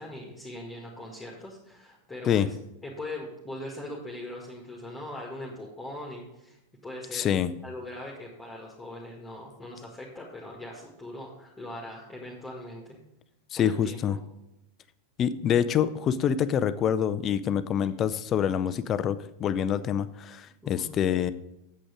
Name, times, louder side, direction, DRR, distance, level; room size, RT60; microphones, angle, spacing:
voice 1, 0.0-7.3 7.6-13.0 13.6-14.2 20.6-20.9, left 1 dB, 10° left, -2 dB, 1.8 m, -41 dB
voice 2, 7.1-7.5 13.5-14.2 15.2-21.3, left 9 dB, 30° left, 14 dB, 0.5 m, -26 dB
8.6 x 7.6 x 5.0 m, 0.89 s
figure-of-eight pair, 90°, 0 cm